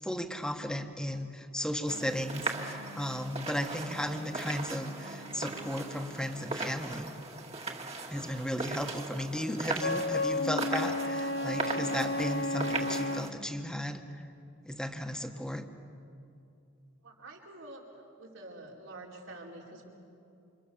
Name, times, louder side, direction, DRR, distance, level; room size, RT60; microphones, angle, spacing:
voice 1, 0.0-7.1 8.1-14.0 14.6-15.6, equal, 5° left, 5 dB, 1.6 m, -35 dB
sound 1, 1.9-13.3, right 3 dB, 30° right, 2.1 m, -39 dB
Wind instrument woodwind instrument, 9.8-13.3, left 2 dB, 70° left, 1.5 m, -32 dB
voice 2, 17.0-17.8 18.2-19.9, right 2 dB, 75° right, -2 dB, 4.8 m, -47 dB
29.5 x 27.5 x 7.2 m, 2.7 s
head